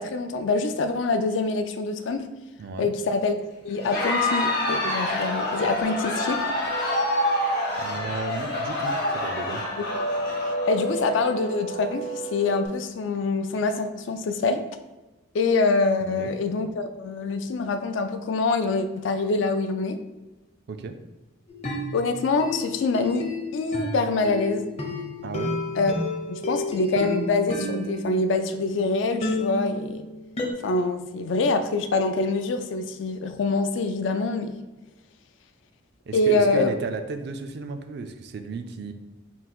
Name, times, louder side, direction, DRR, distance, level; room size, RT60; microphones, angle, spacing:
voice 1, 0.0-2.3 2.8-6.4 10.7-14.6 15.3-20.0 21.9-23.3 23.5-24.6 25.8-25.9 26.3-30.0 30.6-34.5 36.1-36.7, left 3 dB, 70° left, 8 dB, 0.4 m, -25 dB
voice 2, 2.6-2.9 7.8-9.6 16.1-16.3 20.7-21.0 25.2-25.6 36.1-38.9, right 3 dB, 60° right, 8 dB, 0.3 m, -34 dB
Crowd, 3.7-11.3, left 1 dB, 50° left, 0.9 m, -27 dB
sound 1, 5.8-12.7, right 1 dB, 90° right, 0.8 m, -34 dB
sound 2, 21.5-28.8 29.2-30.5, left 2 dB, 35° left, 0.6 m, -31 dB
3.8 x 2.3 x 4.3 m, 1.1 s
head